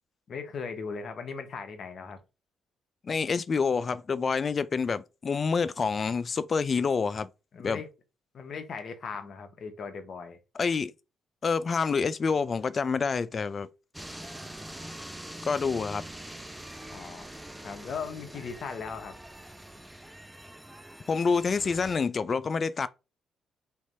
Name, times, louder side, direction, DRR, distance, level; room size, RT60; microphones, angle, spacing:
voice 1, 0.3-2.2 7.5-7.9 8.3-10.4 16.9-17.3 17.6-19.1, left 5 dB, 55° left, 1.0 m, -38 dB
voice 2, 3.0-7.3 7.6-7.8 10.5-10.9 11.4-13.7 15.4-16.0 21.1-22.9, left 5 dB, 40° left, 0.4 m, -27 dB
sound 1, 13.9-22.0, right 1 dB, 5° right, 0.6 m, -44 dB
3.4 x 3.1 x 4.2 m
cardioid pair, 90°, 0 cm